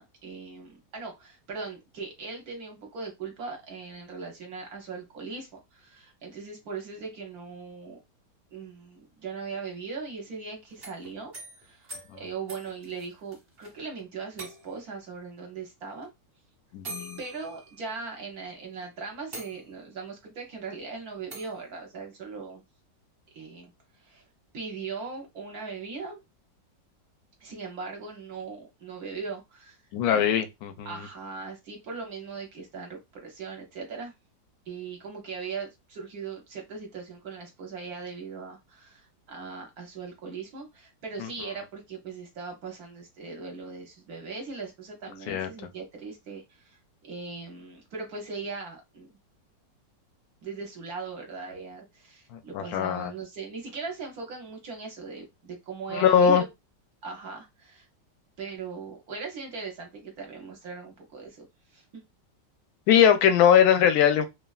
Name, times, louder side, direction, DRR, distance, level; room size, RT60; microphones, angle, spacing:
voice 1, 0.0-8.0 8.5-11.3 11.6-16.1 17.2-22.6 23.3-23.7 24.0-24.2 24.5-26.2 27.4-29.8 30.1-30.4 30.8-34.1 34.7-49.1 50.4-56.5 57.0-57.9 58.4-61.5 61.7-62.0, right 4 dB, 65° right, 1.1 m, -39 dB
sound 1, 10.7-13.7 14.0-14.1 14.4-15.0 16.0-16.1 16.8-18.3 18.8-18.9 19.3-20.0 21.3-21.6, right 2 dB, 35° right, 1.1 m, -44 dB
voice 2, 16.7-17.2 29.9-31.1 41.2-41.3 45.3-45.5 52.3-53.1 55.9-56.4 62.9-64.3, left 8 dB, 70° left, 0.9 m, -21 dB
3.2 x 2.3 x 2.3 m
omnidirectional pair, 2.0 m